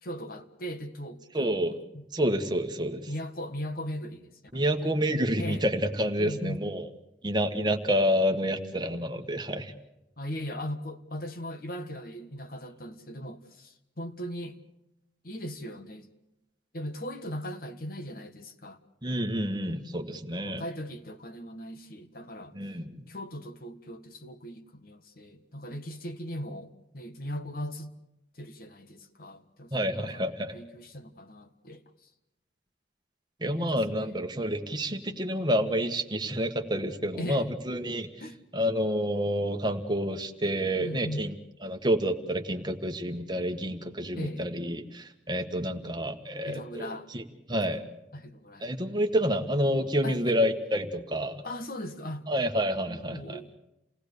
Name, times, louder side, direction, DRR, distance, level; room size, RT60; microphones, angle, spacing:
voice 1, 0.0-2.0 3.1-5.0 5.4-5.6 6.2-6.7 10.2-14.6 15.2-16.1 16.7-18.8 20.4-22.5 23.1-28.0 28.3-30.2 30.5-32.1 33.5-34.1 37.2-37.5 38.2-38.4 40.8-41.3 44.1-44.5 46.4-47.1 47.5-47.8 48.1-48.7 50.0-50.4 51.4-52.3 52.9-53.5, equal, 50° left, 8 dB, 1.6 m, -39 dB
voice 2, 1.3-1.7 2.1-3.1 4.5-6.9 7.2-9.7 19.0-20.6 22.5-23.0 29.7-30.6 33.4-38.1 38.5-41.3 41.6-47.2 47.5-47.8 48.6-51.4 52.3-53.4, equal, 25° right, 6 dB, 1.5 m, -29 dB
29.0 x 18.5 x 6.8 m, 0.91 s
head